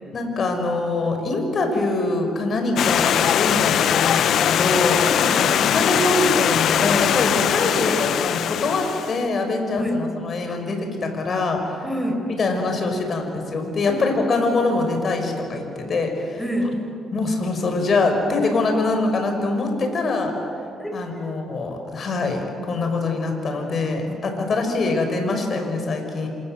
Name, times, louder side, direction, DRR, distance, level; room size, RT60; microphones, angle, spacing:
voice 1, 0.1-5.0 5.4-11.9 12.3-16.4 17.1-20.3 20.9-26.3, left 3 dB, 50° left, 5 dB, 5.8 m, -24 dB
Stream, 2.8-9.2, left 10 dB, 70° left, 0.6 m, -21 dB
voice 2, 5.0-5.5 9.8-10.0 10.5-10.7 11.8-12.2 13.9-14.3 16.4-16.7 20.8-21.3 24.1-24.8, equal, 5° left, 4 dB, 5.3 m, -29 dB
28.0 x 26.0 x 7.9 m, 2.7 s
cardioid pair, 90°, 0 cm